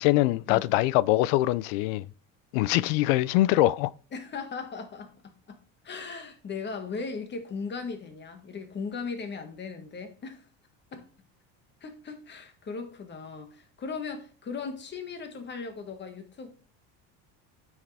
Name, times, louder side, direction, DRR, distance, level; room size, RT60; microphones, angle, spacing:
voice 1, 0.0-2.1 2.5-3.9, left 16 dB, 85° left, 0.5 m, -23 dB
voice 2, 4.1-5.1 5.5-5.6 5.8-10.5 10.9-11.1 11.8-16.5, left 5 dB, 30° left, 1.7 m, -38 dB
9.2 x 6.3 x 3.4 m
cardioid pair, 125°, 37 cm